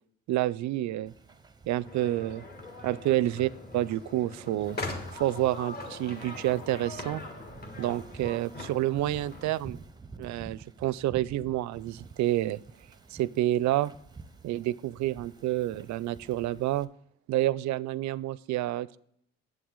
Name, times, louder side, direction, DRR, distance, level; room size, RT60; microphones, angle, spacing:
voice 1, 0.3-1.1 1.7-2.4 2.8-4.8 5.1-7.2 7.8-9.8 10.2-12.6 13.1-13.9 14.4-16.9 17.3-19.0, right 14 dB, 60° right, 20 dB, 0.4 m, -29 dB
Wind / Ocean, 1.1-16.8, right 4 dB, 15° right, 0.7 m, -51 dB
sound 1, 1.8-9.5, left 2 dB, 30° left, 1.8 m, -41 dB
8.6 x 7.6 x 3.8 m, 0.71 s
supercardioid pair, 75°, 32 cm